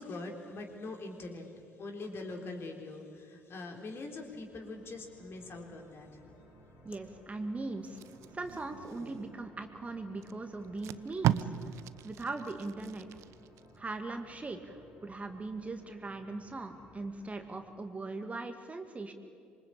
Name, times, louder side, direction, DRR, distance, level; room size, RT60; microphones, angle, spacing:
voice 1, 0.0-6.2, left 2 dB, 40° left, 3 dB, 3.8 m, -43 dB
sound 1, 3.8-17.5, equal, 60° left, 6.8 m, -60 dB
voice 2, 6.8-8.0 8.3-11.5 12.0-13.1 13.8-19.1, right 3 dB, 20° right, 6 dB, 2.1 m, -40 dB
Packing tape duct tape, 7.8-9.5 10.2-10.3 10.6-13.6 14.0-14.3, right 13 dB, 55° right, 0.7 m, -36 dB
26.0 x 23.5 x 8.7 m, 2.4 s
figure-of-eight pair, 50°, 6 cm